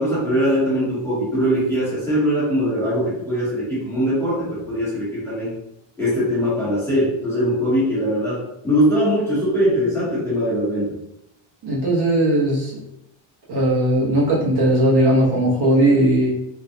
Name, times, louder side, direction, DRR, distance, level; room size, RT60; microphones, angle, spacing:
voice 1, 0.0-5.5 6.0-10.9, equal, 5° left, -11 dB, 1.0 m, -21 dB
voice 2, 11.6-12.7 13.5-16.3, right 1 dB, 50° right, -6 dB, 1.1 m, -18 dB
3.6 x 2.3 x 2.7 m, 0.82 s
cardioid pair, 175°, 49 cm